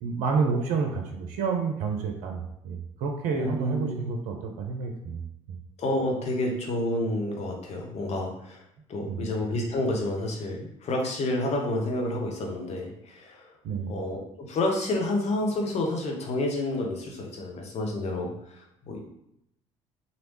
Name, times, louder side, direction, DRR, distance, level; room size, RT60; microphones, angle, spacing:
voice 1, 0.0-5.2 9.1-9.3 13.6-14.0, right 5 dB, 60° right, 3 dB, 0.5 m, -29 dB
voice 2, 3.3-4.1 5.8-8.6 8.9-13.5 13.9-19.0, left 1 dB, 45° left, 1 dB, 0.9 m, -29 dB
3.1 x 2.7 x 3.0 m, 0.79 s
figure-of-eight pair, 50°, 15 cm